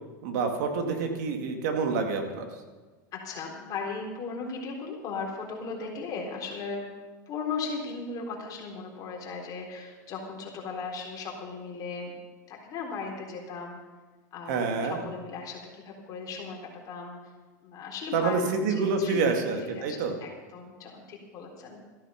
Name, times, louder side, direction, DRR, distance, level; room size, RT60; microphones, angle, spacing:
voice 1, 0.2-2.5 14.5-15.0 18.1-20.1, right 4 dB, 70° right, 5 dB, 2.2 m, -27 dB
voice 2, 3.1-6.9 7.3-12.1 12.5-13.8 14.3-16.6 16.9-17.2 17.6-21.8, left 4 dB, 40° left, 0 dB, 3.9 m, -37 dB
14.0 x 11.0 x 5.9 m, 1.3 s
supercardioid pair, 120°, 10 cm